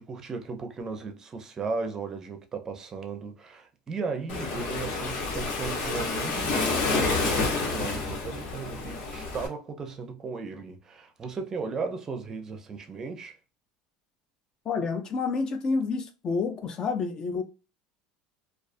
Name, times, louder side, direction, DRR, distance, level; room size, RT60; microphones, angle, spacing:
voice 1, 0.0-13.4, right 4 dB, 25° right, 0.5 m, -36 dB
Waves surf, 4.3-9.5, left 3 dB, 60° left, 1.0 m, -29 dB
voice 2, 14.7-17.4, left 4 dB, 35° left, 0.4 m, -29 dB
2.3 x 2.3 x 2.4 m
supercardioid pair, 130°, 2 cm